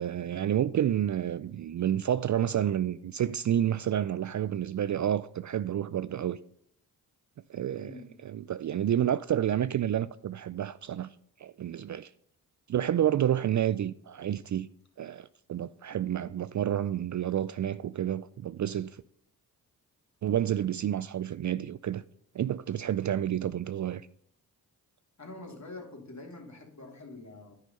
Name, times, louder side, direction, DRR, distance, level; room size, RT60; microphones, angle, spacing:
voice 1, 0.0-6.4 7.5-11.1 11.4-12.1 12.7-14.7 15.0-19.0 20.2-22.0 22.3-24.0, right 10 dB, 45° right, 0.4 m, -29 dB
voice 2, 7.6-8.1 25.2-27.6, left 2 dB, 40° left, 3.0 m, -45 dB
10.5 x 5.7 x 5.3 m
supercardioid pair, 45°, 42 cm